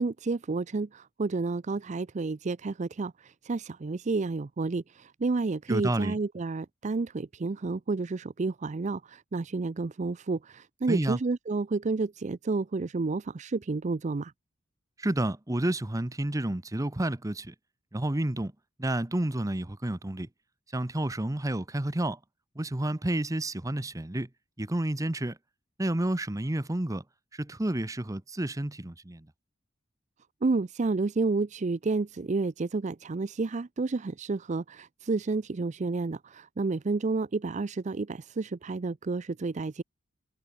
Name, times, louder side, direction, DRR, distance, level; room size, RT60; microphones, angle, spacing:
voice 1, 0.0-14.3 30.4-39.8, right 3 dB, 40° right, 0.5 m, -30 dB
voice 2, 5.7-6.2 10.9-11.2 15.0-17.5 17.9-18.5 18.8-20.3 20.7-22.2 22.5-24.3 24.6-25.4 25.8-27.0 27.3-29.3, right 1 dB, 15° right, 0.8 m, -30 dB
head